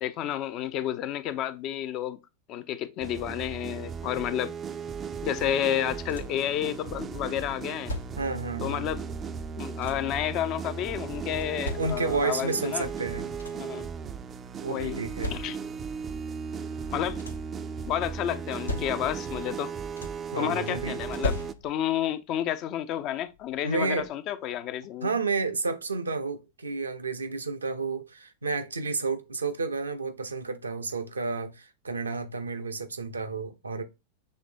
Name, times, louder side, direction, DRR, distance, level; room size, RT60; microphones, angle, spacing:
voice 1, 0.0-2.2 2.5-4.5 5.2-7.9 8.6-9.1 9.6-12.9 13.5-13.9 14.7-15.0 15.3-15.6 16.9-17.2 17.9-19.7 20.4-21.4 21.6-25.1, left 11 dB, 40° left, 0.5 m, -30 dB
sound 1, 3.0-21.5, right 6 dB, 25° right, 0.4 m, -36 dB
sound 2, 5.7-6.5 7.5-8.4 9.4-10.2 11.1-12.3 12.9-13.0 13.2-13.8 14.7-15.9 16.8-17.6 18.3-19.4 19.6-20.4 21.0-22.0 23.3-23.4 23.9-24.1, left 2 dB, 75° left, 0.7 m, -38 dB
voice 2, 8.2-8.9 11.8-13.3 14.6-15.4 20.3-21.0 23.6-24.1 25.0-33.8, right 4 dB, 75° right, 0.6 m, -31 dB
6.4 x 3.2 x 2.5 m
figure-of-eight pair, 90°, 0 cm